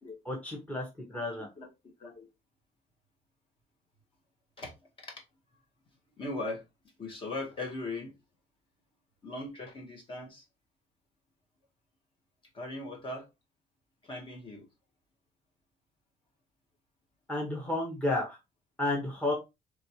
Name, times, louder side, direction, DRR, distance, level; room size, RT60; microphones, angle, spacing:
voice 1, 0.2-1.5 17.3-18.4 18.8-19.3, left 2 dB, 10° left, 1.0 m, -31 dB
voice 2, 6.2-6.6 7.0-8.1 9.2-10.4 12.5-13.3 14.0-14.6, left 2 dB, 35° left, 1.3 m, -38 dB
4.2 x 3.2 x 2.9 m
cardioid pair, 180°, 15 cm